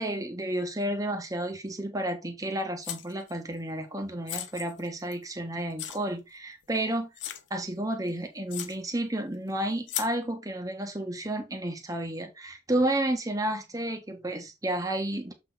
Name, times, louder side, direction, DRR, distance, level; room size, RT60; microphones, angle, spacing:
voice 1, 0.0-7.1 7.5-15.3, right 1 dB, 20° right, 1.4 m, -31 dB
sound 1, 2.8-3.3 4.3-5.3 5.8-6.0 6.6-6.7 7.2-7.5 8.1-8.2 8.5-8.8 9.9-10.1, left 11 dB, 80° left, 0.8 m, -36 dB
7.4 x 4.1 x 4.0 m
head